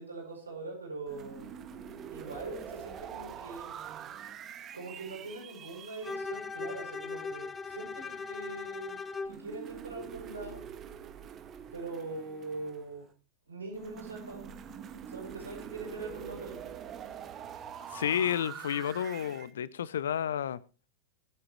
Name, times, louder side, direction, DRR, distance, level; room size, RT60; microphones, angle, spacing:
voice 1, 0.0-1.5 2.1-3.8 4.7-9.0 9.2-10.6 11.7-13.1 13.5-14.5 15.1-16.7, right 3 dB, 75° right, 7.0 m, -42 dB
sound 1, 1.1-6.1 9.3-13.0 13.7-19.5, right 8 dB, 30° right, 1.9 m, -45 dB
Bowed string instrument, 6.0-9.4, left 4 dB, 15° left, 0.9 m, -39 dB
voice 2, 17.9-20.6, left 9 dB, 65° left, 0.6 m, -31 dB
22.0 x 8.7 x 3.2 m
figure-of-eight pair, 90°, 0 cm